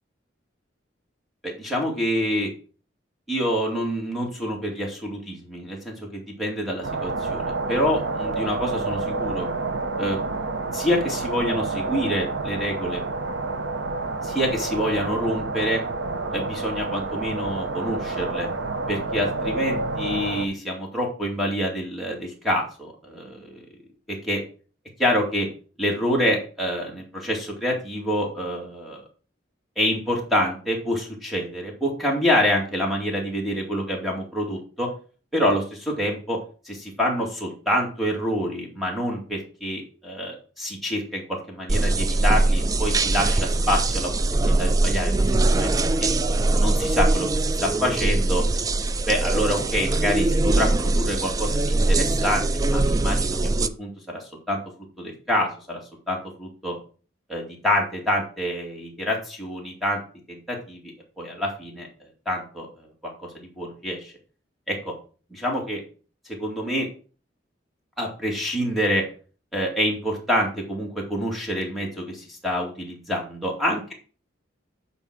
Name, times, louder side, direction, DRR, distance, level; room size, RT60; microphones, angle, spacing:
voice 1, 1.4-2.5 3.3-9.5 10.0-10.2 10.7-13.0 14.2-15.8 16.3-18.5 18.9-23.6 24.2-24.4 25.0-25.5 25.8-29.0 29.8-34.9 35.3-36.4 36.6-44.1 44.4-45.2 45.6-45.7 46.0-46.1 46.5-48.4 49.1-54.6 55.0-55.8 56.1-56.8 57.3-60.0 60.3-60.8 61.2-61.9 62.3-62.7 63.0-64.1 64.7-64.9 65.3-65.8 66.4-66.9 68.0-69.0 69.5-73.9, equal, ahead, -1 dB, 2.3 m, -27 dB
sound 1, 6.8-20.5, right 3 dB, 80° right, 0.9 m, -29 dB
sound 2, 41.7-53.7, right 2 dB, 20° right, 0.3 m, -22 dB
8.9 x 4.1 x 6.0 m, 0.39 s
head